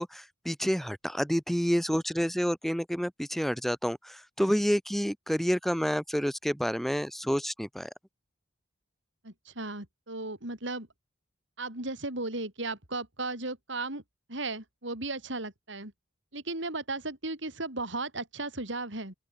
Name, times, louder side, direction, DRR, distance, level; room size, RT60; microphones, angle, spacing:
voice 1, 0.0-7.9, equal, ahead, 5.2 m, -29 dB
voice 2, 9.2-10.9 11.6-14.0 14.3-15.9 16.3-19.1, right 2 dB, 65° right, 5.8 m, -35 dB
open air
head